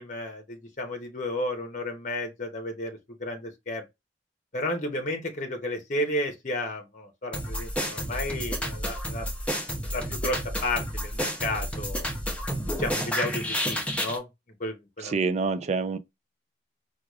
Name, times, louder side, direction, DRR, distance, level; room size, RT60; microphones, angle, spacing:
voice 1, 0.0-3.8 4.5-9.3 9.9-12.1 12.8-14.3 14.6-15.2, left 1 dB, 40° left, 0.8 m, -32 dB
sound 1, 7.3-14.2, equal, 5° left, 0.7 m, -31 dB
voice 2, 15.0-16.0, right 4 dB, 35° right, 0.3 m, -26 dB
4.6 x 2.4 x 2.3 m
head